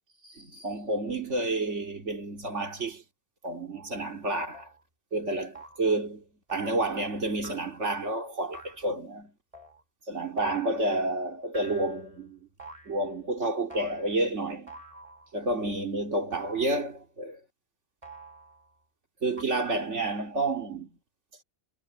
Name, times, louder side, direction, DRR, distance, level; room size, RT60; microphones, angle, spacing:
voice 1, 0.2-3.0 3.4-4.7 5.1-6.2 6.5-9.3 10.1-12.5 12.9-14.7 15.3-17.4 19.2-21.0, right 2 dB, 80° right, 3.0 m, -30 dB
sound 1, 3.8-3.9 4.5-4.8 5.5-5.9 6.5-6.9 7.4-7.9 8.5-8.9 9.5-9.8 10.4-10.9 11.5-12.2 12.6-13.1 13.7-14.2 14.7-15.4 16.3-17.0 18.0-18.7 19.4-19.5, right 2 dB, 30° right, 5.3 m, -47 dB
omnidirectional pair, 1.2 m